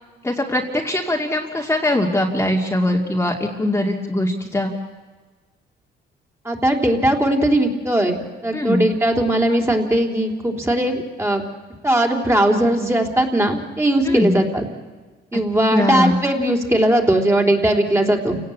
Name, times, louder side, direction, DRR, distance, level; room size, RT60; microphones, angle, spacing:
voice 1, 0.2-4.7 8.5-8.8 14.0-14.4 15.7-16.1, left 1 dB, 10° left, -1 dB, 2.4 m, -21 dB
voice 2, 6.5-8.2 8.4-11.4 11.8-14.6 15.3-18.4, right 1 dB, 15° right, 1 dB, 3.4 m, -19 dB
28.5 x 17.5 x 8.5 m, 1.4 s
cardioid pair, 90°, 20 cm